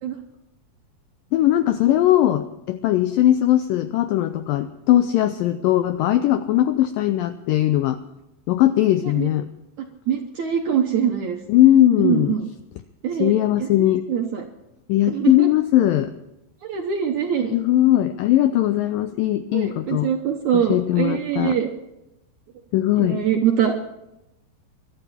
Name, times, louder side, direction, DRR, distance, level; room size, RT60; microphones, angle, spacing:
voice 1, 1.3-8.0 8.5-9.5 11.5-12.4 13.2-14.1 14.9-16.1 17.5-20.1 20.5-21.6 22.7-23.2, left 13 dB, 85° left, 10 dB, 2.0 m, -19 dB
voice 2, 10.1-11.4 12.0-12.5 13.0-13.3 13.6-13.7 14.1-14.5 15.1-15.5 16.6-17.5 19.5-21.7 23.0-23.9, right 8 dB, 70° right, 3 dB, 1.8 m, -23 dB
23.0 x 12.5 x 4.3 m, 0.92 s
omnidirectional pair, 4.7 m